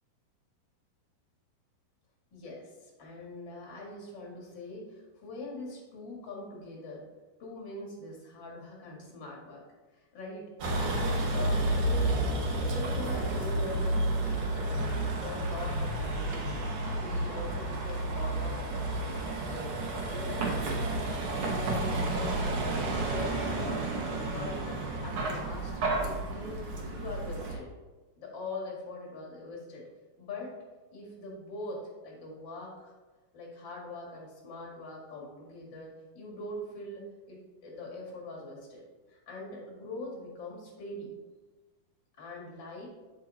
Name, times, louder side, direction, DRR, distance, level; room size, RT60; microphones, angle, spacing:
voice 1, 2.3-7.0 7.4-9.6 9.9-10.4 10.8-12.3 12.6-19.1 19.4-20.9 21.3-24.8 25.0-25.7 26.0-27.7 28.2-29.9 30.2-30.5 30.9-32.9 33.3-38.8 39.1-41.1 42.2-42.9, left 2 dB, 40° left, -3 dB, 1.9 m, -43 dB
Vehicle, 10.6-27.5, right 2 dB, 75° right, 1.3 m, -31 dB
9.1 x 4.2 x 4.2 m, 1.3 s
omnidirectional pair, 4.2 m